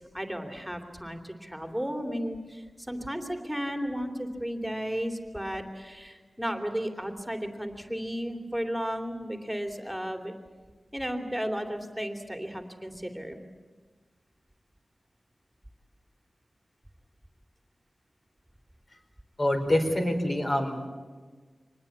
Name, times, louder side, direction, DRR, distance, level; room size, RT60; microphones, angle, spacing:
voice 1, 0.0-10.3 10.9-13.4, equal, 5° right, 4 dB, 3.0 m, -34 dB
voice 2, 19.4-20.9, left 1 dB, 45° left, 3 dB, 4.6 m, -26 dB
25.0 x 20.0 x 8.6 m, 1.4 s
wide cardioid pair, 70°, 0 cm